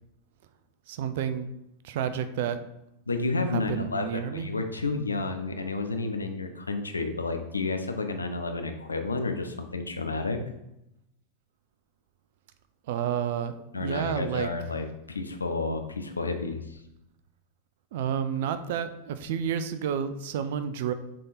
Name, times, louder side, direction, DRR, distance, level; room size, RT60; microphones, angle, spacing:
voice 1, 0.9-1.5 1.8-2.6 3.5-4.5 12.9-14.5 17.9-20.9, right 8 dB, 55° right, 11 dB, 0.5 m, -30 dB
voice 2, 3.1-10.4 13.7-16.8, left 3 dB, 80° left, 6 dB, 0.7 m, -31 dB
6.5 x 3.7 x 4.2 m, 0.86 s
figure-of-eight pair, 90°, 0 cm